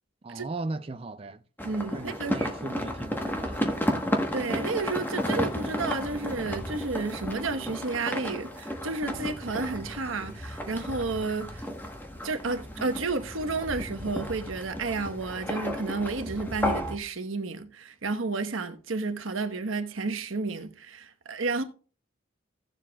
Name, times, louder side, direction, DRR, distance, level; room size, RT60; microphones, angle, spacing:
voice 1, 0.2-1.4 1.9-3.7, right 2 dB, 30° right, 0.4 m, -37 dB
sound 1, 1.6-17.0, equal, 10° left, 1.1 m, -33 dB
voice 2, 1.6-2.5 4.3-11.6 12.2-21.6, right 3 dB, 85° right, 1.1 m, -31 dB
16.5 x 7.3 x 2.3 m
head